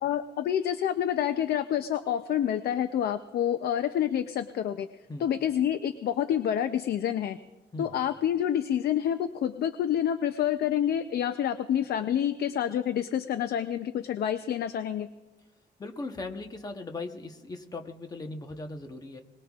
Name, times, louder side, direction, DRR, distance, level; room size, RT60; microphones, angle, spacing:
voice 1, 0.0-4.9 5.2-7.4 7.8-15.1, left 10 dB, 60° left, 10 dB, 0.5 m, -28 dB
voice 2, 15.8-19.2, left 2 dB, 20° left, 5 dB, 1.0 m, -38 dB
25.0 x 20.0 x 2.4 m, 1.1 s
cardioid pair, 175°, 19 cm